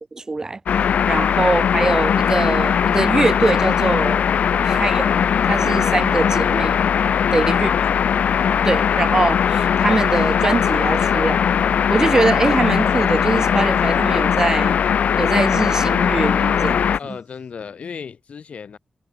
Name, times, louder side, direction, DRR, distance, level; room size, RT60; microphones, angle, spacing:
voice 1, 0.1-0.6 1.1-4.3 4.6-6.8 7.3-7.7 8.6-11.6 11.9-14.8 15.2-16.9, right 3 dB, 25° right, 3.3 m, -22 dB
sound 1, 0.7-17.0, left 8 dB, 90° left, 0.5 m, -19 dB
voice 2, 17.0-18.8, left 6 dB, 60° left, 5.1 m, -37 dB
wide cardioid pair, 170°, 2 cm